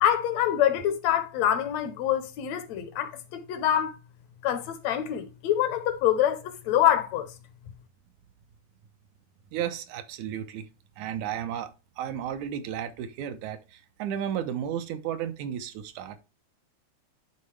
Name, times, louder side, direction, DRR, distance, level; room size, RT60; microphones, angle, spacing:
voice 1, 0.0-3.9 4.4-7.3, left 11 dB, 75° left, 1.8 m, -25 dB
voice 2, 9.5-10.7 11.0-16.2, right 9 dB, 85° right, 2.1 m, -33 dB
11.0 x 3.9 x 3.2 m
omnidirectional pair, 3.3 m